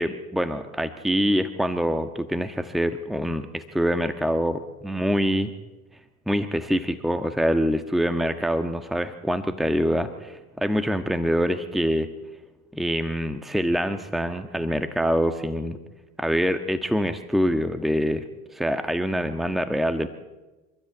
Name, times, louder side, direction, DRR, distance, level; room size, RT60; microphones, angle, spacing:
voice 1, 0.0-5.5 6.3-12.1 12.7-15.8 16.2-18.2 18.5-20.1, equal, ahead, 9 dB, 1.4 m, -25 dB
29.0 x 13.5 x 8.4 m, 1.1 s
hypercardioid pair, 65°, 44 cm